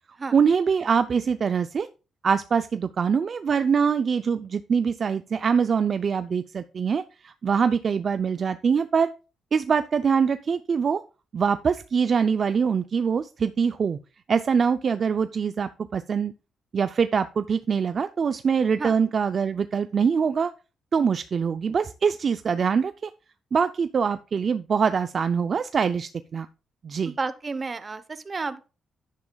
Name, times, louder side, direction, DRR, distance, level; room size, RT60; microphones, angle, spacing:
voice 1, 0.3-1.9 2.2-9.1 9.5-11.0 11.3-14.0 14.3-16.3 16.7-20.5 20.9-23.1 23.5-26.5 26.8-27.1, right 6 dB, 50° right, 11 dB, 0.4 m, -24 dB
voice 2, 27.0-28.6, right 4 dB, 35° right, 14 dB, 0.8 m, -31 dB
10.5 x 9.6 x 2.3 m, 0.33 s
cardioid pair, 85°, 0 cm